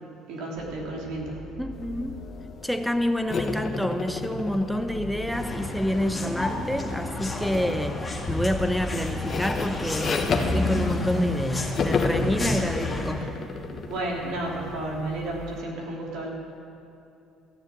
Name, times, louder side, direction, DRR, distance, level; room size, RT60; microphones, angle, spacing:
voice 1, 0.3-1.4 12.2-12.5 13.2-13.3 13.7-16.3, right 2 dB, 75° right, -2 dB, 3.0 m, -32 dB
sound 1, 0.6-15.4, left 5 dB, 60° left, 1.1 m, -43 dB
voice 2, 1.6-2.3 2.6-13.3, equal, ahead, 7 dB, 0.9 m, -28 dB
sound 2, 3.3-6.6 7.5-7.8 8.2-11.4 11.7-15.3, left 4 dB, 45° left, 1.3 m, -31 dB
sound 3, 5.3-13.1, left 2 dB, 15° left, 2.0 m, -30 dB
14.0 x 7.2 x 8.9 m, 2.7 s
supercardioid pair, 85°, 0 cm